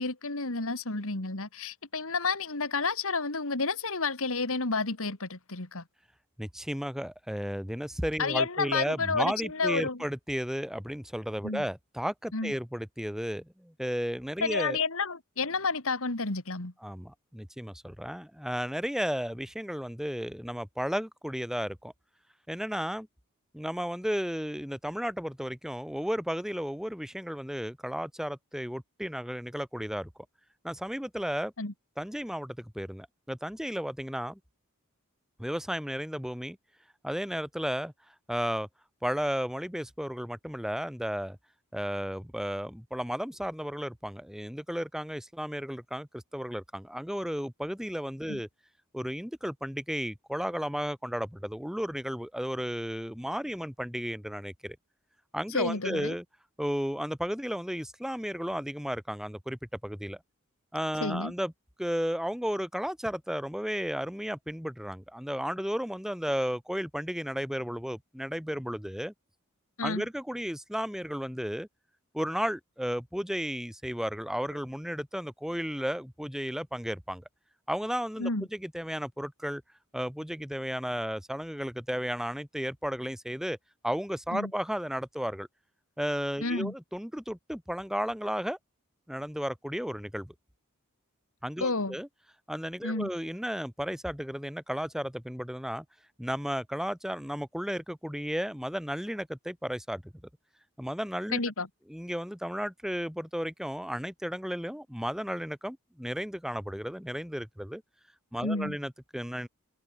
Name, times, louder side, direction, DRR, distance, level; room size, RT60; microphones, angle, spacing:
voice 1, 0.0-5.8 8.2-10.0 11.4-11.6 12.3-12.5 14.4-16.7 31.6-31.7 48.3-48.4 55.5-56.1 61.0-61.3 69.8-70.0 78.2-78.5 84.3-84.5 86.4-86.7 91.6-92.0 92.8-93.1 101.3-101.7 108.4-108.8, left 4 dB, 65° left, 2.8 m, -30 dB
voice 2, 6.4-14.8 16.8-21.9 22.5-23.1 23.5-30.1 30.6-31.5 32.0-34.4 35.4-36.6 37.0-37.9 38.3-38.7 39.0-41.4 41.7-48.5 48.9-54.8 55.3-56.2 56.6-60.2 60.7-61.5 61.8-69.1 69.8-71.7 72.1-77.2 77.7-79.6 79.9-83.6 83.8-85.5 86.0-88.6 89.1-90.3 91.4-92.1 92.5-95.8 96.2-100.0 100.8-101.4 101.9-107.8 108.3-109.5, equal, ahead, 3.2 m, -34 dB
open air
head